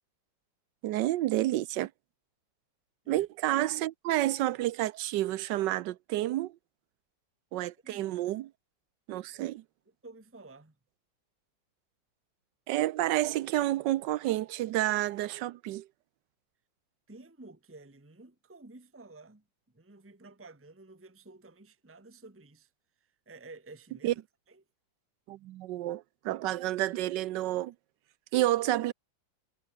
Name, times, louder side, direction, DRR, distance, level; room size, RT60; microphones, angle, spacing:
voice 1, 0.8-1.9 3.1-6.5 7.5-8.5 9.1-9.6 12.7-15.9 24.0-24.1 25.3-27.7 28.3-28.9, right 15 dB, 70° right, 1.2 m, -29 dB
voice 2, 7.8-8.2 9.3-9.6 9.9-10.8 17.1-22.7 23.0-24.2 24.5-24.6, right 2 dB, 10° right, 1.3 m, -52 dB
omnidirectional pair, 2.1 m